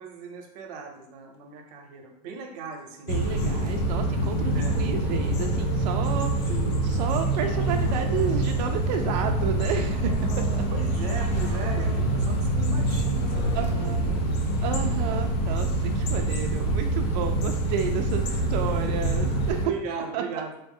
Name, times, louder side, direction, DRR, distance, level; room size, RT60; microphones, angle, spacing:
voice 1, 0.0-3.4 4.5-4.8 6.5-6.7 10.7-14.6 15.0-15.2 16.0-16.1 18.3-18.4 19.5-20.5, right 5 dB, 70° right, 3 dB, 0.8 m, -38 dB
sound 1, 3.1-19.7, right 1 dB, 70° left, 0.7 m, -25 dB
voice 2, 3.1-6.5 6.8-10.6 13.5-14.0 14.6-19.6 20.1-20.2, right 7 dB, 90° right, 5 dB, 0.4 m, -31 dB
sound 2, 7.4-14.9, left 2 dB, 30° left, 0.5 m, -41 dB
4.1 x 2.0 x 3.6 m, 0.85 s
cardioid pair, 165°, 21 cm